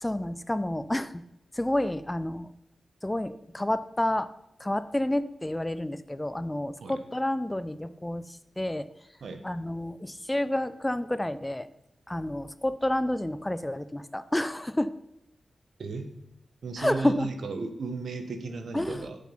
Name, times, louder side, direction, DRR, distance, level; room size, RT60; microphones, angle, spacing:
voice 1, 0.0-1.2 1.5-2.5 3.0-4.3 4.6-8.9 9.4-11.7 12.1-14.9 16.8-17.3 18.7-19.1, left 1 dB, 10° left, 14 dB, 0.3 m, -29 dB
voice 2, 15.8-16.1 16.6-19.2, right 4 dB, 80° right, 7 dB, 1.1 m, -35 dB
7.6 x 7.0 x 5.6 m, 0.84 s
wide cardioid pair, 150°, 0 cm